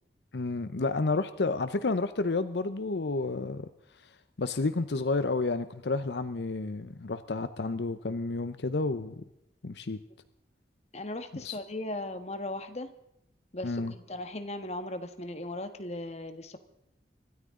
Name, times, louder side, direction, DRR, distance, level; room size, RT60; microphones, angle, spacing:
voice 1, 0.3-3.7 4.4-9.1 9.6-10.0 11.4-11.6 13.6-13.9, left 3 dB, 75° left, 12 dB, 0.7 m, -30 dB
voice 2, 10.9-12.9 13.5-16.6, left 1 dB, 40° left, 8 dB, 1.5 m, -37 dB
25.5 x 13.5 x 3.7 m, 0.82 s
head